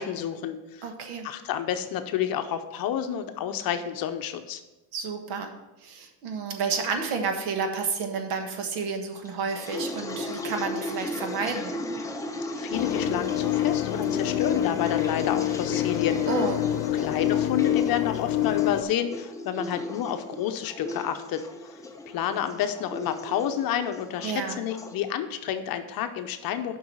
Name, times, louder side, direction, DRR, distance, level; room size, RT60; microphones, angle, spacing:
voice 1, 0.0-0.8 1.2-4.6 12.6-16.2 16.9-21.4 22.1-26.8, left 9 dB, 45° left, 8 dB, 0.7 m, -30 dB
voice 2, 0.8-1.3 4.9-5.5 5.8-11.7 16.3-16.6 24.2-24.6, right 5 dB, 80° right, 5 dB, 1.5 m, -30 dB
sound 1, 9.2-24.9, left 1 dB, 10° left, 0.3 m, -36 dB
sound 2, 12.7-18.8, left 13 dB, 80° left, 0.8 m, -26 dB
6.9 x 5.5 x 6.3 m, 1.1 s
cardioid pair, 140°, 49 cm